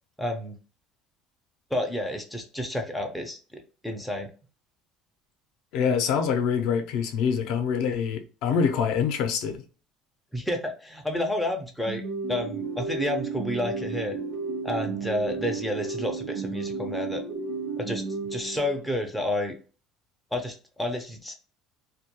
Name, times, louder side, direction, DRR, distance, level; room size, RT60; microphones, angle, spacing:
voice 1, 0.2-0.6 1.7-4.3 10.3-12.0 12.3-14.2 14.6-17.2 17.8-18.0 18.3-19.6 20.3-21.3, left 1 dB, ahead, 0.4 m, -30 dB
voice 2, 5.7-9.6, left 6 dB, 60° left, 0.5 m, -25 dB
sound 1, 11.9-19.0, right 4 dB, 85° right, 1.0 m, -33 dB
2.2 x 2.2 x 2.8 m
cardioid pair, 165°, 0 cm